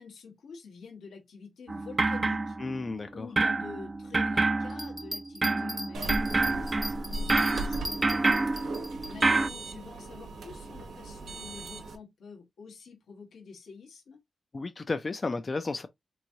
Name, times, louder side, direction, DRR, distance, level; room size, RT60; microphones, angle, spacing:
voice 1, 0.0-2.6 3.1-14.2, left 5 dB, 90° left, 1.2 m, -48 dB
sound 1, 1.7-3.0 3.4-9.5, right 3 dB, 35° right, 0.4 m, -28 dB
voice 2, 2.6-3.3 14.5-15.9, left 3 dB, 40° left, 0.4 m, -33 dB
Bell, 4.7-9.1 9.6-9.7, equal, 5° right, 0.7 m, -38 dB
sound 2, 5.9-12.0, right 2 dB, 90° right, 0.9 m, -38 dB
3.5 x 3.1 x 2.7 m
cardioid pair, 80°, 0 cm